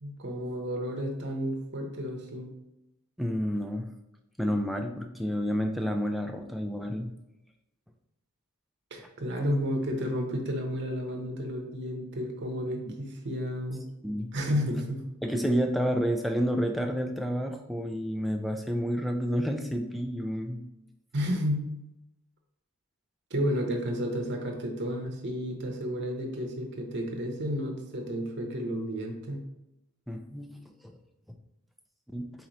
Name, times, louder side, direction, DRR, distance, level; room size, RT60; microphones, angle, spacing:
voice 1, 0.0-2.5 8.9-13.8 14.3-15.0 21.1-21.7 23.3-29.4, equal, 50° right, 2 dB, 0.8 m, -32 dB
voice 2, 3.2-3.9 4.4-7.1 12.6-13.0 14.0-14.3 15.2-20.6 30.1-30.6 32.1-32.3, equal, ahead, 3 dB, 0.3 m, -30 dB
4.2 x 3.0 x 4.0 m, 0.89 s
head